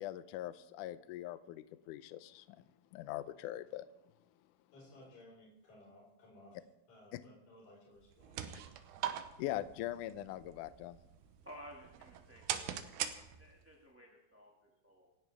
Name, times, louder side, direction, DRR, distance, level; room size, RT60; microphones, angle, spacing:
voice 1, 0.0-2.5 2.9-3.9 9.4-11.0, left 14 dB, 75° left, 13 dB, 1.9 m, -42 dB
voice 2, 4.7-6.6 6.9-8.6, left 1 dB, 55° left, -6 dB, 6.2 m, -59 dB
sound 1, 8.0-13.7, right 10 dB, 85° right, 2.8 m, -43 dB
voice 3, 11.4-12.8 13.4-15.1, equal, 10° right, -2 dB, 0.7 m, -55 dB
27.0 x 11.5 x 3.5 m, 0.93 s
omnidirectional pair, 4.2 m